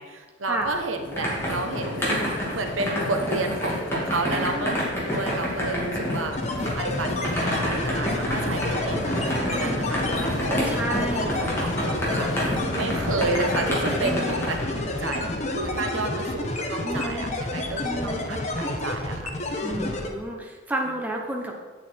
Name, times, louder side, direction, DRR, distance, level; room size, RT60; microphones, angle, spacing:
voice 1, 0.0-4.8 5.1-6.4 6.7-9.1 9.5-10.6 10.9-14.6 15.0-15.2 15.5-19.4 19.7-20.0, right 3 dB, 85° right, 5 dB, 1.0 m, -31 dB
sound 1, 0.6-14.6, equal, 10° left, 2.2 m, -29 dB
sound 2, 1.2-15.6, left 2 dB, 70° left, 0.9 m, -36 dB
voice 2, 4.2-4.7 9.4-9.9 10.7-11.4 14.0-14.4 16.8-17.3 17.8-18.3 19.6-21.5, right 1 dB, 10° right, 0 dB, 0.8 m, -31 dB
sound 3, 6.3-20.1, left 2 dB, 35° left, 1.0 m, -30 dB
8.5 x 7.9 x 4.4 m, 1.4 s
head